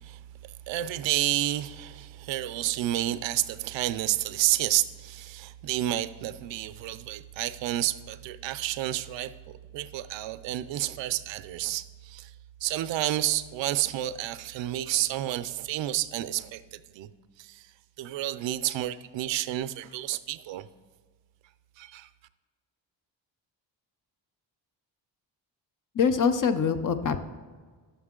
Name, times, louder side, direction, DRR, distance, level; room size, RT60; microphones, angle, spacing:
voice 1, 0.0-9.3 9.7-12.3 12.6-17.1 17.4-17.7 18.0-20.7 21.8-22.1, right 14 dB, 75° right, 0.5 m, -30 dB
voice 2, 25.9-27.2, left 6 dB, 45° left, 0.7 m, -24 dB
11.0 x 7.1 x 3.7 m
cardioid pair, 75°, 46 cm